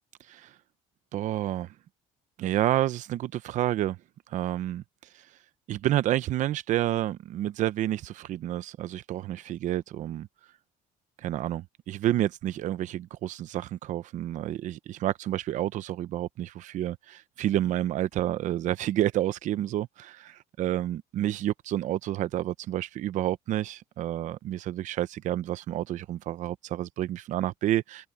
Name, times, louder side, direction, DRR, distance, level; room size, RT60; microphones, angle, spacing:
voice 1, 1.1-1.7 2.4-4.0 4.3-4.8 5.1-5.3 5.7-10.3 11.2-28.1, right 13 dB, 60° right, 0.7 m, -29 dB
cardioid pair, 120°, 14 cm